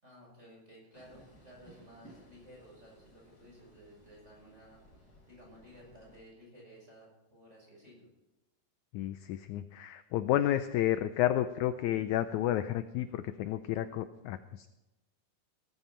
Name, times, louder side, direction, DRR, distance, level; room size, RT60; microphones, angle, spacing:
voice 1, 0.0-8.1, equal, 20° right, -2 dB, 7.4 m, -55 dB
Train, 0.9-6.2, equal, 35° left, 5.7 m, -59 dB
voice 2, 8.9-14.7, left 12 dB, 80° left, 11 dB, 1.7 m, -31 dB
18.5 x 13.5 x 4.4 m, 1.0 s
omnidirectional pair, 4.0 m